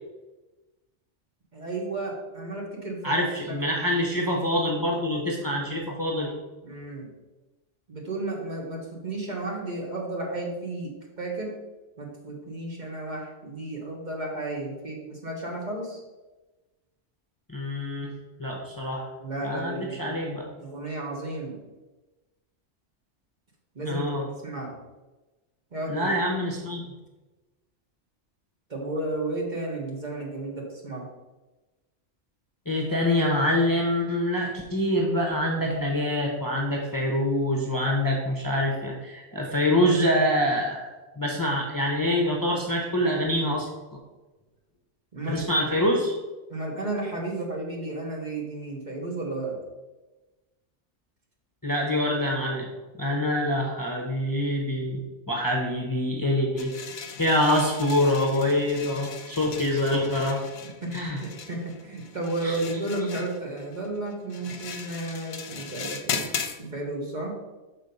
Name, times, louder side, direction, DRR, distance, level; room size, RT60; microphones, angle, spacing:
voice 1, 1.5-3.2 3.5-3.6 6.6-7.1 7.9-11.6 12.0-16.0 19.2-20.2 20.6-21.6 23.7-24.7 25.7-26.1 28.7-31.1 45.1-45.4 46.5-49.6 60.8-66.3 66.6-67.4, right 2 dB, 40° right, -1 dB, 1.5 m, -33 dB
voice 2, 3.0-6.3 17.5-18.1 18.4-19.1 19.4-20.5 23.9-24.2 25.9-26.8 32.7-43.7 45.3-46.1 51.6-52.7 53.0-55.0 55.3-56.7 57.2-60.4 60.9-61.2 62.4-62.6, left 1 dB, 20° left, -1 dB, 0.8 m, -25 dB
sound 1, 56.6-66.6, left 6 dB, 65° left, 0.9 m, -37 dB
6.2 x 4.3 x 5.3 m, 1.1 s
omnidirectional pair, 1.2 m